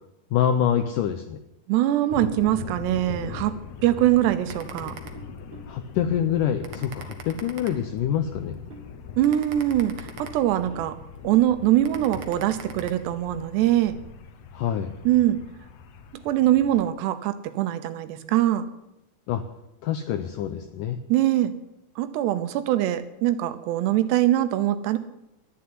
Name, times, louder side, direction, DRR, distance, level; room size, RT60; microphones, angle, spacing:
voice 1, 0.3-1.4 5.7-8.6 14.5-14.9 19.3-19.4 19.8-21.0, left 9 dB, 90° left, 8 dB, 1.9 m, -26 dB
voice 2, 1.7-3.5 3.8-4.9 9.2-10.9 11.2-14.0 15.0-15.4 16.3-18.7 21.1-21.5 22.0-25.0, right 13 dB, 90° right, 11 dB, 3.1 m, -22 dB
sound 1, 2.1-16.9, left 6 dB, 75° left, 1.7 m, -41 dB
sound 2, 4.5-5.7 6.1-6.3 6.6-8.3 8.7-8.9 9.2-10.9 11.3-11.5 11.8-12.9, right 6 dB, 65° right, 1.3 m, -41 dB
11.5 x 10.5 x 9.7 m, 0.86 s
omnidirectional pair, 4.7 m